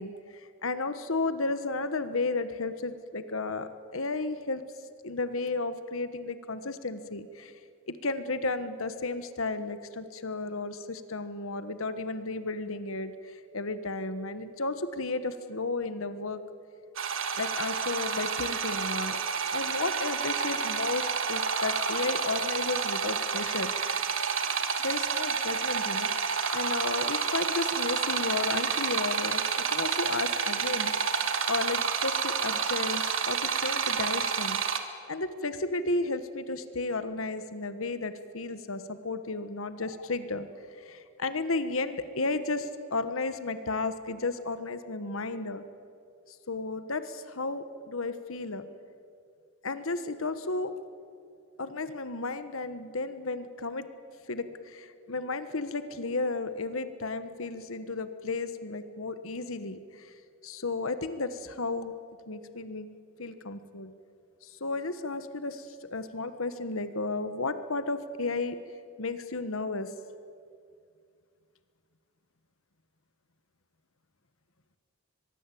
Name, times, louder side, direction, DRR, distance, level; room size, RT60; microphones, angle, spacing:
voice 1, 0.0-4.6 5.0-7.5 7.9-16.4 17.4-19.2 19.5-23.7 24.8-29.4 29.7-30.9 31.2-34.6 35.1-40.5 40.8-45.6 46.3-48.6 49.6-50.7 51.6-53.9 54.3-60.1 60.4-61.9 62.3-62.9 63.2-63.9 64.4-68.6 69.0-69.9, left 3 dB, 70° left, 11 dB, 1.3 m, -33 dB
sound 1, 17.0-34.8, right 6 dB, 65° right, 2.0 m, -29 dB
23.5 x 22.0 x 8.5 m, 2.3 s
head